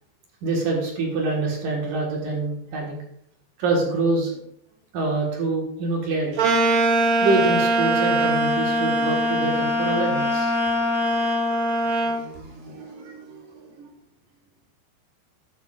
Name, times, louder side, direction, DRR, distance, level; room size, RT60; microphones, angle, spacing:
voice 1, 0.4-3.0 3.6-4.4 4.9-6.5 7.2-11.1 11.6-13.9, right 2 dB, 60° right, -1 dB, 2.9 m, -26 dB
sound 1, 6.4-12.2, right 1 dB, 80° right, 1.1 m, -22 dB
13.5 x 9.1 x 2.5 m, 0.74 s
omnidirectional pair, 4.8 m